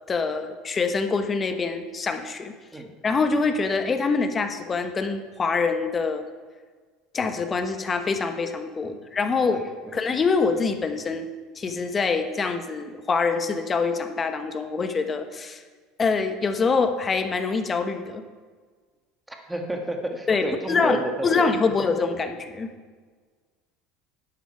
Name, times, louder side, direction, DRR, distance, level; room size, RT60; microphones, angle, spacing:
voice 1, 0.1-6.2 7.1-9.6 9.9-11.3 11.6-15.6 16.0-18.2 20.3-22.7, left 4 dB, 30° left, 8 dB, 1.1 m, -25 dB
voice 2, 9.5-9.9 19.3-21.5, right 1 dB, 10° right, 3 dB, 1.8 m, -31 dB
11.0 x 8.2 x 4.7 m, 1.5 s
hypercardioid pair, 90°, 0 cm